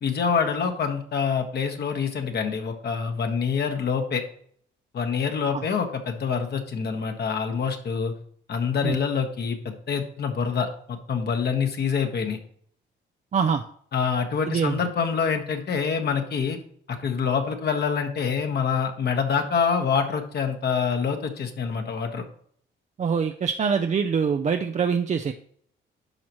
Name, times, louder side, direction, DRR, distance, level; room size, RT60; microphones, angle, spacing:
voice 1, 0.0-4.2 4.9-8.1 8.5-12.4 13.9-16.6 16.9-22.3, left 6 dB, 55° left, 5 dB, 1.5 m, -26 dB
voice 2, 13.3-13.6 14.5-14.8 23.0-25.3, right 6 dB, 35° right, 6 dB, 0.5 m, -24 dB
10.5 x 5.8 x 3.1 m, 0.62 s
cardioid pair, 90°, 20 cm